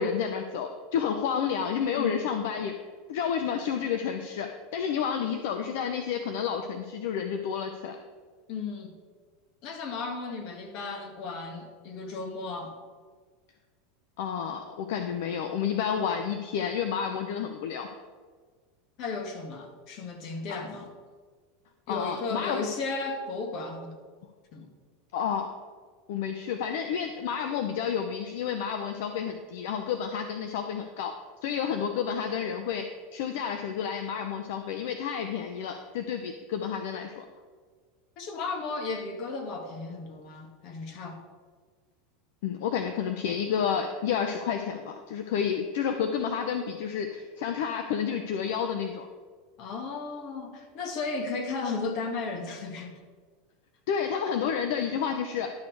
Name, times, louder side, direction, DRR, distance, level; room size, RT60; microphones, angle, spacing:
voice 1, 0.0-2.7 3.1-8.0 14.2-17.9 20.5-20.6 21.9-22.7 25.1-25.5 26.1-31.2 31.4-32.9 33.1-37.2 42.4-49.1 53.9-55.5, left 7 dB, 70° left, 6 dB, 0.7 m, -30 dB
voice 2, 1.9-2.2 8.5-8.9 9.6-12.7 19.0-20.9 21.9-23.9 24.5-24.7 38.2-41.2 49.6-52.9, left 4 dB, 55° left, 4 dB, 1.8 m, -34 dB
11.5 x 6.4 x 4.7 m, 1.5 s
supercardioid pair, 110°, 0 cm